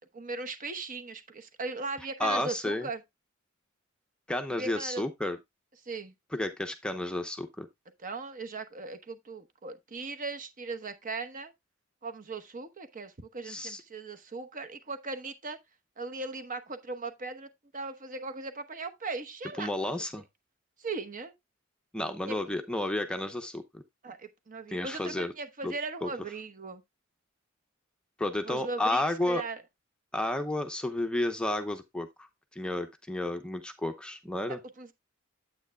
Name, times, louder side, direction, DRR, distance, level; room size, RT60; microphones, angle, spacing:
voice 1, 0.1-3.0 4.6-5.1 5.9-6.1 8.0-11.5 12.0-15.6 16.0-19.7 20.8-21.3 22.2-22.4 24.0-26.8 28.4-29.6 34.8-34.9, right 3 dB, 40° right, 1.0 m, -38 dB
voice 2, 2.2-2.9 4.3-5.4 6.3-7.7 13.4-13.8 19.6-20.2 21.9-23.8 24.7-25.3 25.6-25.7 26.0-26.1 28.2-29.4 30.1-32.3 32.5-34.6, left 1 dB, 5° left, 0.7 m, -31 dB
9.1 x 8.3 x 2.2 m
head